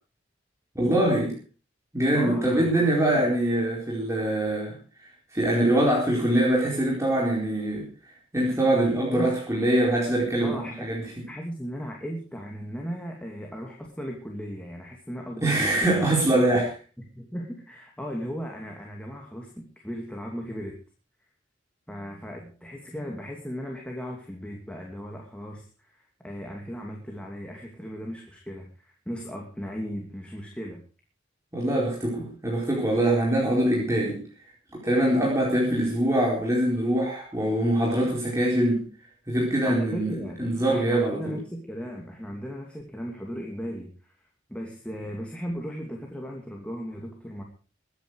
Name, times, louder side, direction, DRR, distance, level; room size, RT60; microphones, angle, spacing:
voice 1, 0.7-1.4 1.9-4.7 5.3-7.8 8.3-11.0 15.4-16.7 31.5-34.2 34.7-38.8 39.3-40.1 40.4-41.4, right 1 dB, 15° right, -4 dB, 4.3 m, -23 dB
voice 2, 2.1-3.3 9.1-9.4 10.4-10.9 11.3-16.6 17.0-20.8 21.9-30.8 39.6-40.4 40.7-44.1 44.5-47.4, equal, 5° left, 0 dB, 2.6 m, -36 dB
21.5 x 10.0 x 4.8 m, 0.37 s
head